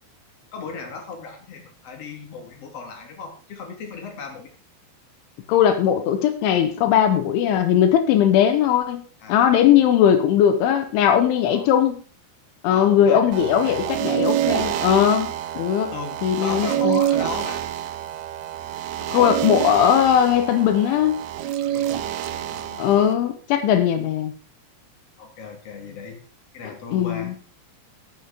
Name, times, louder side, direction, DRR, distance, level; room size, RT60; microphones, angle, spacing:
voice 1, 0.5-4.5 9.2-9.5 11.4-11.7 12.7-13.8 15.9-17.6 21.6-22.9 25.2-26.2 26.5-27.4, left 4 dB, 40° left, 2 dB, 3.3 m, -37 dB
voice 2, 5.5-9.0 9.3-12.0 12.6-15.3 15.6-15.9 16.2-17.0 19.1-21.2 22.8-24.3 26.9-27.3, left 9 dB, 85° left, 8 dB, 3.6 m, -19 dB
sound 1, 13.3-23.1, right 11 dB, 80° right, 2.4 m, -27 dB
15.0 x 7.6 x 5.1 m, 0.40 s
omnidirectional pair, 5.4 m